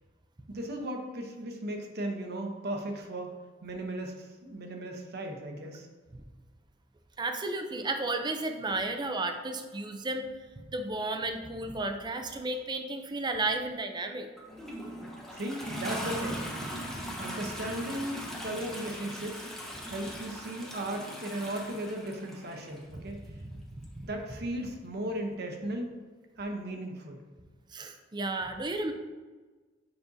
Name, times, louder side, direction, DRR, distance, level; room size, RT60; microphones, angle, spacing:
voice 1, 0.5-3.3 3.6-5.9 15.3-16.5 17.2-19.5 19.8-23.2 24.0-25.9 26.4-27.2, right 1 dB, 55° right, 3 dB, 0.8 m, -36 dB
voice 2, 7.2-10.3 10.7-14.3 22.9-23.0 23.4-23.6 24.0-24.1 27.7-28.9, right 2 dB, 20° right, 6 dB, 0.5 m, -33 dB
Toilet flush, 14.4-22.8 23.8-23.9, equal, ahead, 0.8 m, -39 dB
7.1 x 5.2 x 2.7 m, 1.3 s
head